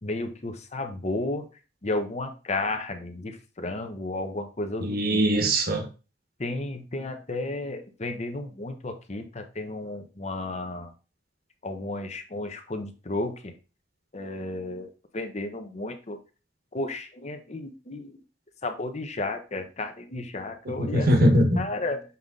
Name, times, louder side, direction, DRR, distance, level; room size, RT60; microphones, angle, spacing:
voice 1, 0.0-1.5 1.8-5.2 6.4-10.9 11.6-13.5 14.1-16.2 16.7-18.2 18.6-21.1 21.6-22.0, left 2 dB, 40° left, 1.0 m, -33 dB
voice 2, 4.8-5.8 20.6-21.6, equal, 55° right, 1.4 m, -21 dB
7.1 x 3.7 x 3.8 m
head